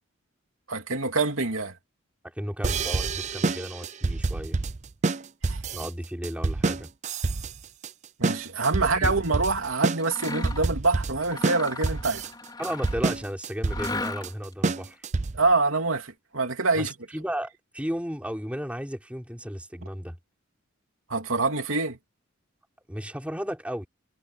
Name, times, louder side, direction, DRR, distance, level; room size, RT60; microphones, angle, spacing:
voice 1, 0.7-1.7 5.4-5.6 8.2-12.3 15.3-16.9 21.1-22.0, right 3 dB, 90° right, 3.1 m, -25 dB
voice 2, 2.2-4.6 5.7-6.9 9.0-9.1 12.6-15.0 16.7-20.2 22.9-23.9, equal, 5° right, 5.0 m, -34 dB
sound 1, 2.6-15.5, right 3 dB, 35° right, 0.6 m, -28 dB
Mechanisms, 10.0-10.7 11.2-13.1 13.6-14.5, left 2 dB, 20° left, 4.8 m, -35 dB
head